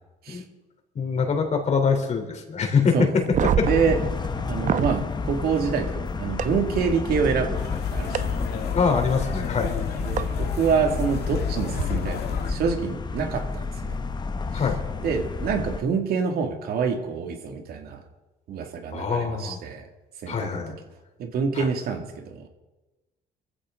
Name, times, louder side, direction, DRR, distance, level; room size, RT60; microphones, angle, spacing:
voice 1, 1.0-3.2 3.6-3.7 8.7-9.7 14.5-14.8 18.9-19.6 20.3-20.8 21.5-21.7, left 5 dB, 40° left, 4 dB, 3.6 m, -24 dB
sound 1, 3.2-5.0 6.4-6.5 8.1-8.2 10.2-10.3 11.7-11.8, right 8 dB, 50° right, 0.9 m, -26 dB
sound 2, 3.6-15.8, left 4 dB, 25° left, 1.0 m, -31 dB
voice 2, 3.6-4.0 4.4-7.6 7.9-8.1 10.0-12.2 12.5-14.0 15.0-18.0 18.5-19.8 20.2-20.6 21.2-22.5, right 6 dB, 65° right, 4 dB, 2.4 m, -26 dB
sound 3, 7.6-12.5, left 6 dB, 70° left, 1.9 m, -30 dB
24.0 x 15.0 x 3.9 m, 1.1 s
cardioid pair, 110°, 17 cm